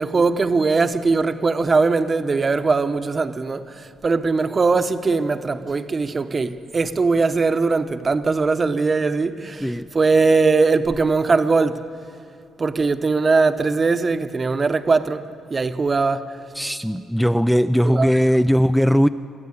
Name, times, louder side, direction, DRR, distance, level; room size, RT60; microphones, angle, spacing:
voice 1, 0.0-9.6 9.9-11.8 12.6-15.2 15.5-16.3 17.8-18.1, right 4 dB, 35° right, 0.9 m, -20 dB
voice 2, 16.5-19.1, equal, ahead, 0.4 m, -18 dB
23.5 x 14.5 x 8.4 m
cardioid pair, 90°, 0 cm